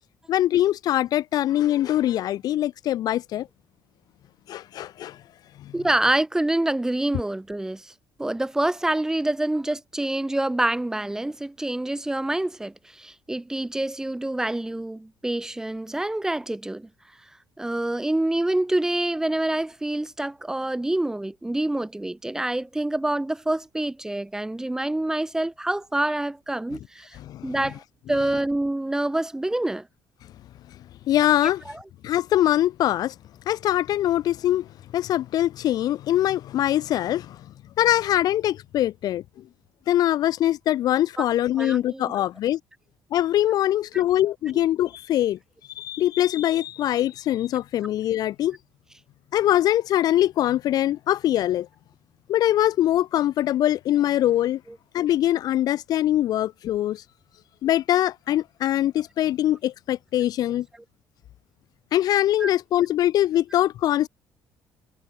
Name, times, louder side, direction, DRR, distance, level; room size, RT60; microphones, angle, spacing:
voice 1, 0.3-3.5 4.5-5.2 5.6-5.7 27.2-27.6 31.1-31.6 32.0-33.1 33.5-34.7 34.9-37.5 37.8-39.2 39.9-42.6 43.1-45.4 45.8-48.6 49.3-51.7 52.3-54.6 54.9-57.0 57.6-60.7 61.9-64.1, left 13 dB, 55° left, 0.3 m, -23 dB
voice 2, 5.7-7.9 8.2-16.9 17.6-27.2 27.4-27.8 28.1-29.9 41.2-41.3 41.6-42.1 62.4-62.5, right 1 dB, 5° right, 0.5 m, -26 dB
cardioid pair, 150°, 8 cm